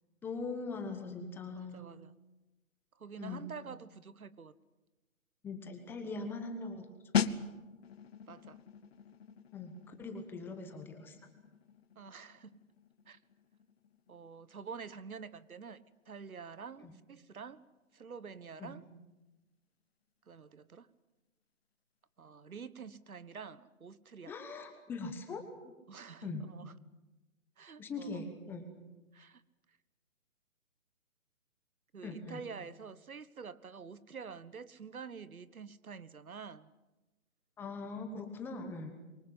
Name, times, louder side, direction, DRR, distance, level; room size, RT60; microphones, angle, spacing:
voice 1, 0.2-1.9 3.2-3.5 5.4-6.9 7.3-7.4 9.5-11.2 16.8-17.0 18.6-18.7 24.3-25.7 26.2-26.5 27.8-28.7 32.0-32.4 37.6-39.0, left 3 dB, 5° left, 5 dB, 1.0 m, -41 dB
voice 2, 1.6-2.1 2.9-4.5 8.3-8.6 11.9-12.6 13.1-13.2 14.1-17.6 17.9-18.8 20.3-20.9 22.2-24.3 25.9-26.7 27.6-28.2 29.1-29.4 31.9-36.7, right 6 dB, 80° right, 16 dB, 1.4 m, -48 dB
sound 1, 7.1-17.6 17.9-18.2, left 7 dB, 45° left, 1.1 m, -40 dB
26.0 x 23.5 x 7.9 m, 1.1 s
hypercardioid pair, 155°, 42 cm